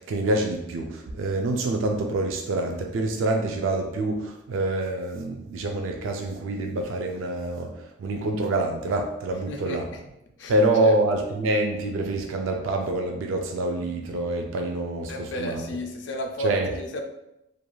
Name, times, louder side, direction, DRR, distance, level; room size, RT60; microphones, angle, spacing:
voice 1, 0.0-9.9 10.5-15.6 16.4-16.7, right 2 dB, 75° right, 3 dB, 0.3 m, -26 dB
voice 2, 9.5-10.0 10.4-10.5 10.8-10.9 15.1-17.0, left 1 dB, 60° left, 4 dB, 0.4 m, -33 dB
3.0 x 2.4 x 2.2 m, 0.86 s
head